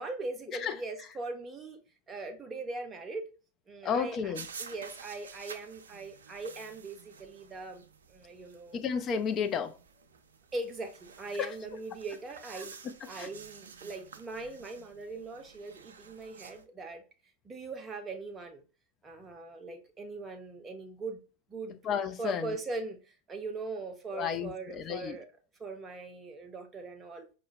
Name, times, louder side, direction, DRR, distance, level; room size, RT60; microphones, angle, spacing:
voice 1, 0.0-1.8 2.1-3.3 3.7-8.8 10.5-12.8 13.1-17.0 17.4-18.6 19.0-21.2 21.5-21.8 22.2-25.3 25.6-27.3, right 3 dB, 20° right, 0.6 m, -40 dB
voice 2, 3.8-4.5 8.7-9.8 11.4-11.5 12.6-13.3 21.8-22.6 24.1-25.2, left 7 dB, 30° left, 0.4 m, -32 dB
sound 1, 4.3-16.6, right 5 dB, 70° right, 0.3 m, -51 dB
4.9 x 2.1 x 2.6 m
figure-of-eight pair, 90°, 0 cm